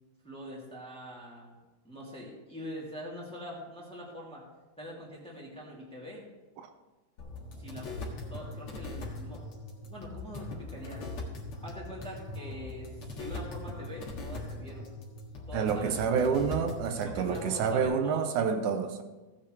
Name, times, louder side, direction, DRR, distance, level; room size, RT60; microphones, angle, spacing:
voice 1, 0.2-1.6 1.8-4.4 4.8-6.3 7.6-7.9 8.3-9.4 9.9-11.0 11.6-14.9 15.5-16.4 17.0-18.3, equal, ahead, -4 dB, 2.2 m, -43 dB
sound 1, 7.2-17.8, left 2 dB, 50° left, 2.4 m, -41 dB
voice 2, 15.5-19.0, right 6 dB, 80° right, 7 dB, 2.2 m, -28 dB
16.0 x 8.8 x 3.2 m, 1.2 s
omnidirectional pair, 3.4 m